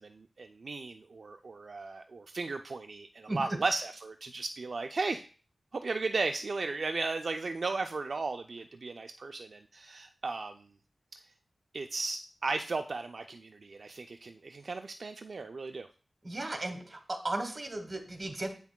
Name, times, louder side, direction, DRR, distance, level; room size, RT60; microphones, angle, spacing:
voice 1, 0.0-5.2 5.8-10.7 11.1-11.2 11.7-15.9, right 3 dB, 65° right, 5 dB, 0.3 m, -35 dB
voice 2, 16.2-18.5, right 2 dB, 35° right, 6 dB, 1.2 m, -35 dB
8.0 x 5.8 x 2.2 m, 0.39 s
wide cardioid pair, 95°, 0 cm